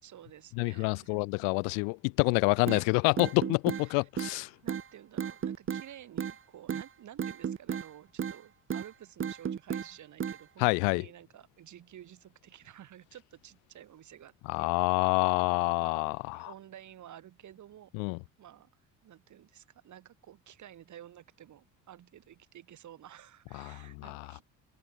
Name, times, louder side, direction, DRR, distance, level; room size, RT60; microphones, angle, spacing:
voice 1, 0.0-1.2 3.7-4.1 4.6-14.7 15.8-15.9 16.3-17.9 18.4-18.7 19.0-24.4, right 11 dB, 55° right, 4.1 m, -52 dB
voice 2, 0.6-4.5 10.6-11.0 14.5-16.5 17.9-18.2 23.5-24.3, left 40 dB or more, 90° left, 0.8 m, -28 dB
sound 1, 2.7-2.8 3.2-3.8 4.2-4.3 4.7-4.8 5.2-5.8 6.2-6.4 6.7-6.8 7.2-7.9 8.2-8.4 8.7-8.9 9.2-9.9 10.2-10.4, right 8 dB, 35° right, 1.6 m, -33 dB
supercardioid pair, 90°, 35 cm